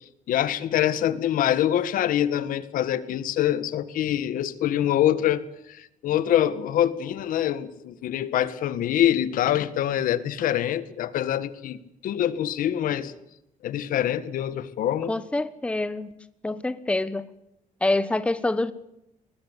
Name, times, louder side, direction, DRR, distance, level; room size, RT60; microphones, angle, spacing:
voice 1, 0.3-5.4 5.7-13.1 13.6-15.2, left 11 dB, 80° left, 1.7 m, -25 dB
voice 2, 15.1-16.1 16.4-17.2 17.8-18.7, left 2 dB, 10° left, 1.1 m, -26 dB
23.5 x 20.5 x 8.2 m
cardioid pair, 160°, 14 cm